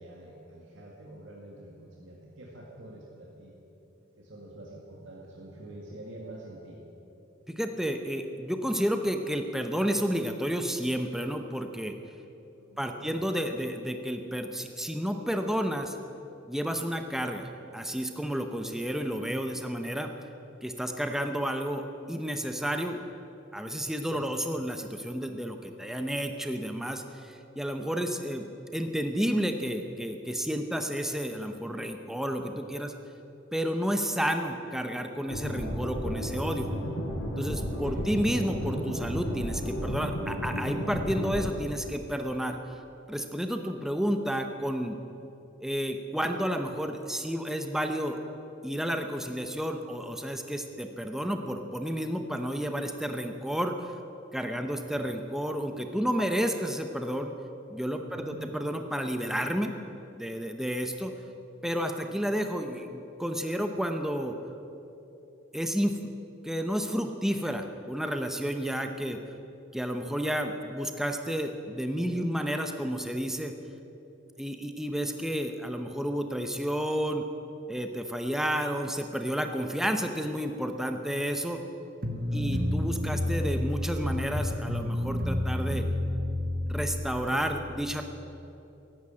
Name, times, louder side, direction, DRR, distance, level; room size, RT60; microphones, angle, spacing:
voice 1, 0.0-3.5 4.2-6.8 12.6-13.2 24.1-24.3 37.6-38.0 54.5-54.7 58.0-58.4 82.1-82.5, right 1 dB, 70° right, -2 dB, 1.8 m, -47 dB
voice 2, 7.5-11.9 12.8-16.0 16.5-20.1 20.6-23.0 23.5-32.9 33.5-36.7 37.4-42.6 43.1-45.0 45.6-48.2 48.6-53.9 54.3-57.3 57.7-59.7 60.1-61.1 61.6-64.4 65.5-66.1 66.4-69.2 69.7-73.5 74.4-77.3 77.7-81.6 82.3-85.8 86.7-88.0, equal, ahead, 5 dB, 0.7 m, -31 dB
sound 1, 35.3-41.4, equal, 75° left, 4.8 m, -33 dB
sound 2, 82.0-87.3, left 1 dB, 45° right, 1.4 m, -30 dB
14.5 x 11.5 x 8.6 m, 3.0 s
head